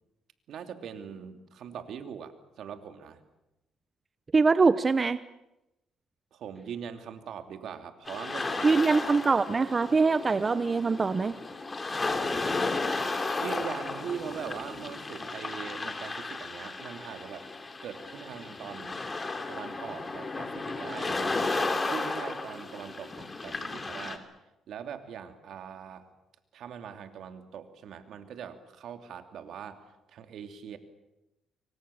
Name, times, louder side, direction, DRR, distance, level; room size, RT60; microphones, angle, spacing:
voice 1, 0.5-3.2 6.3-9.0 13.4-17.5 17.8-19.0 19.5-24.2 24.7-26.0 26.5-29.8 30.1-30.8, right 8 dB, 70° right, 7 dB, 2.9 m, -41 dB
voice 2, 4.3-5.2 8.6-11.4, right 4 dB, 30° right, 13 dB, 0.9 m, -23 dB
sound 1, 8.1-24.2, left 3 dB, 25° left, 3.3 m, -34 dB
26.5 x 24.0 x 7.1 m, 0.95 s
cardioid pair, 90°, 0 cm